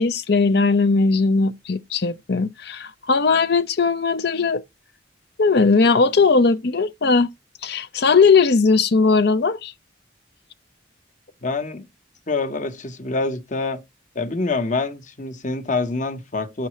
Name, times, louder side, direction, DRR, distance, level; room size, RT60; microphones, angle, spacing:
voice 1, 0.0-4.6 5.4-7.3 7.6-9.7, left 4 dB, 60° left, 0.6 m, -18 dB
voice 2, 11.4-11.9 12.3-13.8 14.1-16.7, left 3 dB, 40° left, 1.1 m, -26 dB
8.6 x 6.9 x 3.1 m
head